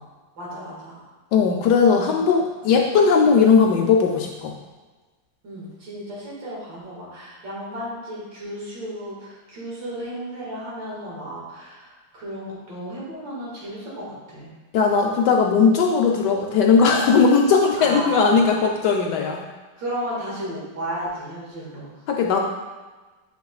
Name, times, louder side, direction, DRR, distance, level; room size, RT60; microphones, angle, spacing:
voice 1, 0.4-1.0 5.4-14.5 17.8-18.6 19.8-21.9, right 1 dB, 70° right, -6 dB, 2.6 m, -34 dB
voice 2, 1.3-4.5 14.7-19.4 22.1-22.4, left 5 dB, 75° left, 2 dB, 1.1 m, -18 dB
7.1 x 5.9 x 2.4 m, 1.3 s
omnidirectional pair, 2.1 m